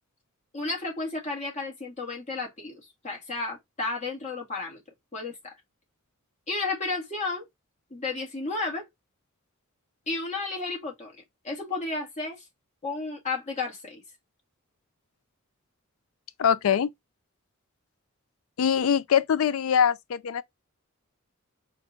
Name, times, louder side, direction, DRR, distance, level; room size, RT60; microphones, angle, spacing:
voice 1, 0.5-4.8 5.1-5.4 6.5-7.4 7.9-8.9 10.1-12.4 12.8-14.0, left 3 dB, 35° left, 1.8 m, -32 dB
voice 2, 16.4-16.9 18.6-20.4, left 8 dB, 75° left, 0.4 m, -23 dB
4.4 x 2.5 x 3.8 m
head